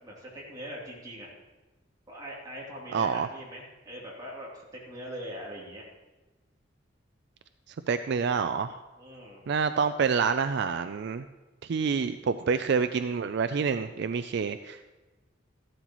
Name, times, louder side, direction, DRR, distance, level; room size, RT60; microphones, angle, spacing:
voice 1, 0.0-1.3 2.1-5.8 9.0-9.4, equal, 20° right, -5 dB, 3.1 m, -42 dB
voice 2, 2.9-3.3 7.9-8.8 9.5-11.3 11.6-14.9, right 5 dB, 60° right, 10 dB, 0.4 m, -27 dB
14.0 x 12.0 x 3.1 m, 1.2 s
head